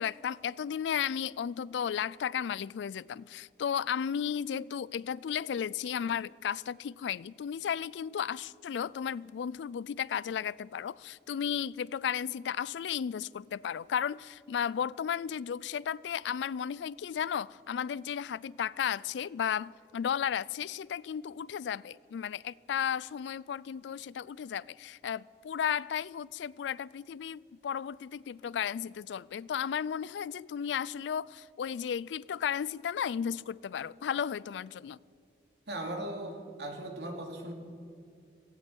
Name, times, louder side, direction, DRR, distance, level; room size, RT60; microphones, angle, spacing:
voice 1, 0.0-35.0, left 8 dB, 80° left, 0.3 m, -34 dB
voice 2, 35.7-37.5, right 1 dB, 70° right, 2.7 m, -38 dB
17.5 x 16.5 x 4.6 m
head